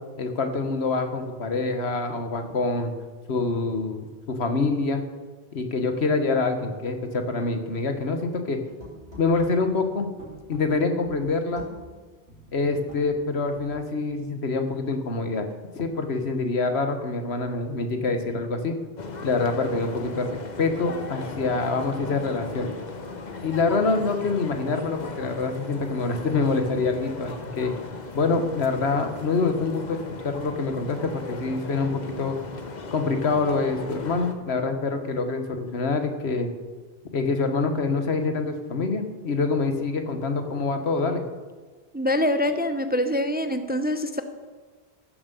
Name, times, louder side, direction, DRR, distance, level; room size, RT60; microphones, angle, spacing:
voice 1, 0.2-2.9 3.3-5.0 5.5-8.6 9.2-10.1 10.5-11.7 12.5-15.4 15.7-18.8 19.2-22.7 23.4-27.7 28.1-32.4 32.9-36.5 37.1-41.2, left 3 dB, 90° left, 6 dB, 1.5 m, -26 dB
sound 1, 8.8-13.9, equal, 70° right, 4.0 m, -47 dB
sound 2, 19.0-34.3, left 3 dB, 45° left, 1.1 m, -37 dB
voice 2, 41.9-44.2, left 1 dB, 10° right, 9 dB, 0.5 m, -24 dB
14.5 x 7.4 x 6.9 m, 1.4 s
omnidirectional pair, 1.1 m